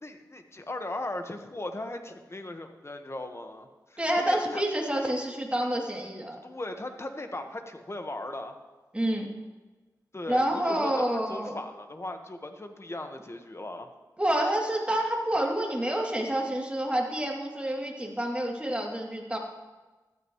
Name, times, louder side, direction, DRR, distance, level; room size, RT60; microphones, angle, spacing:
voice 1, 0.0-4.6 6.4-8.5 10.1-13.9, left 1 dB, 40° left, 5 dB, 1.5 m, -38 dB
voice 2, 4.0-6.4 8.9-9.3 10.3-11.6 14.2-19.4, right 1 dB, 15° right, -1 dB, 3.0 m, -28 dB
15.5 x 13.0 x 3.2 m, 1.2 s
cardioid pair, 45°, 7 cm